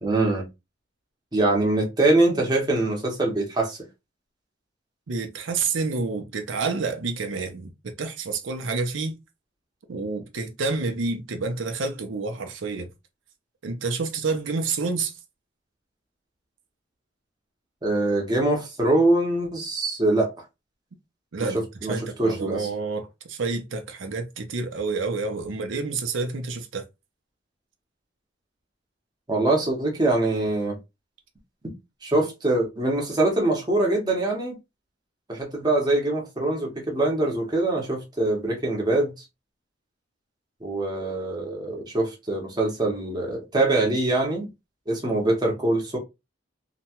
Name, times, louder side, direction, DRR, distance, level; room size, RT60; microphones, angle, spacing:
voice 1, 0.0-0.4 1.3-3.8 17.8-20.3 21.5-22.7 29.3-30.8 32.0-34.6 35.3-39.1 40.6-44.5 44.9-46.0, right 2 dB, 20° right, 0.8 m, -23 dB
voice 2, 5.1-9.2 9.9-12.9 13.6-15.1 21.3-26.8, right 4 dB, 90° right, 0.6 m, -29 dB
2.8 x 2.2 x 2.8 m
head